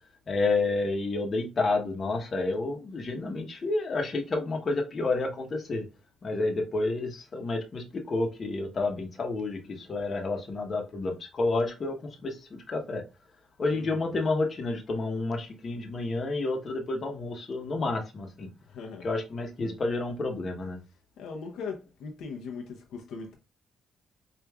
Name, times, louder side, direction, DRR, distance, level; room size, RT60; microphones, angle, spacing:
voice 1, 0.3-5.8 6.2-13.0 13.6-18.5 19.0-20.8, left 3 dB, 45° left, 0.9 m, -30 dB
voice 2, 13.7-14.1 18.7-19.1 21.2-23.4, left 5 dB, 80° left, 0.6 m, -39 dB
4.7 x 2.4 x 2.3 m
cardioid pair, 90°, 0 cm